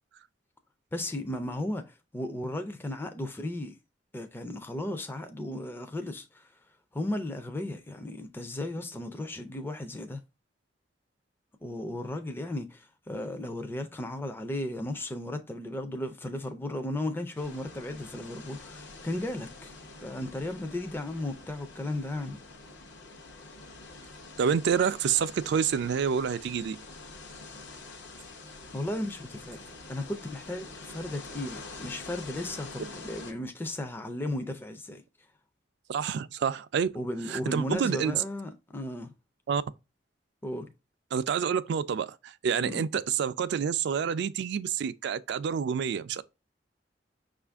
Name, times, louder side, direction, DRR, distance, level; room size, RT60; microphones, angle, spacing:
voice 1, 0.9-3.8 4.1-6.5 6.9-10.2 11.6-19.7 20.0-22.4 28.7-29.6 29.9-35.0 36.9-39.1 40.4-40.7 42.6-42.8, left 1 dB, 10° left, 0.4 m, -35 dB
sound 1, 17.4-33.3, left 3 dB, 70° left, 0.8 m, -46 dB
voice 2, 24.4-26.8 35.9-36.9 37.3-38.2 39.5-39.6 41.1-46.2, right 7 dB, 65° right, 0.3 m, -28 dB
5.6 x 2.5 x 3.3 m
head